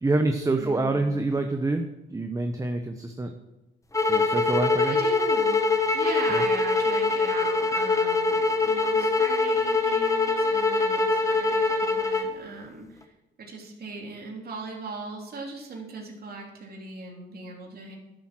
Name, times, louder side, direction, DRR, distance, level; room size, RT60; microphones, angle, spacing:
voice 1, 0.0-1.8 2.1-3.3 4.1-5.0 6.3-6.4, right 2 dB, 15° right, 5 dB, 1.0 m, -26 dB
voice 2, 0.6-1.1 4.9-5.6 5.9-13.1 13.4-18.0, right 3 dB, 50° right, 0 dB, 3.4 m, -39 dB
sound 1, 3.9-12.3, left 3 dB, 15° left, 1.3 m, -23 dB
11.5 x 7.2 x 6.1 m, 1.0 s
cardioid pair, 90°, 20 cm